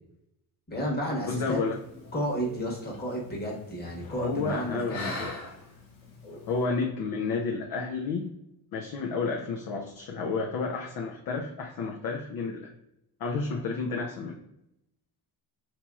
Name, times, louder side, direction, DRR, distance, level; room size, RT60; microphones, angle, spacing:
voice 1, 0.7-1.6 2.1-5.3, equal, 20° left, -3 dB, 1.2 m, -32 dB
voice 2, 1.3-1.8 4.2-5.3 6.5-8.3 8.7-12.7 13.2-14.4, left 4 dB, 45° left, 1 dB, 0.5 m, -31 dB
sound 1, 1.7-6.6, left 3 dB, 80° left, 1.0 m, -43 dB
2.9 x 2.8 x 2.3 m, 0.83 s
supercardioid pair, 75°, 50 cm